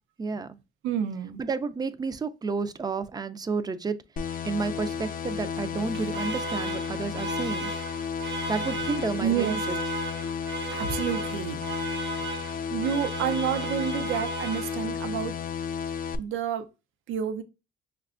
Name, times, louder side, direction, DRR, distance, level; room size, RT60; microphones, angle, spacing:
voice 1, 0.2-0.6 1.4-7.7 8.5-9.8, right 4 dB, 20° right, 0.4 m, -31 dB
voice 2, 0.8-1.4 9.2-9.6 10.7-11.6 12.7-15.4 16.2-16.7 17.1-17.4, right 8 dB, 85° right, 0.5 m, -29 dB
sound 1, 4.2-16.2, left 7 dB, 45° left, 0.4 m, -33 dB
Alarm, 5.7-15.1, right 4 dB, 60° right, 0.9 m, -36 dB
5.6 x 2.2 x 2.4 m
cardioid pair, 90°, 20 cm